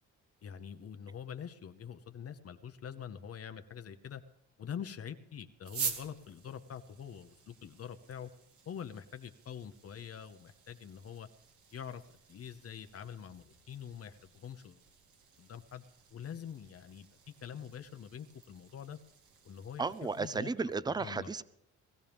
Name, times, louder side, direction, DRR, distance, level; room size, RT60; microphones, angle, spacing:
voice 1, 0.4-4.2 4.6-8.3 8.7-11.3 11.7-14.8 15.4-15.8 16.1-19.0 19.4-19.8 20.2-20.5 21.0-21.3, left 8 dB, 50° left, 9 dB, 0.9 m, -45 dB
sound 1, 5.6-20.4, right 6 dB, 75° right, 2.2 m, -47 dB
voice 2, 19.8-21.4, right 4 dB, 15° right, 17 dB, 0.6 m, -34 dB
20.0 x 14.5 x 3.5 m, 0.82 s
cardioid pair, 90°, 30 cm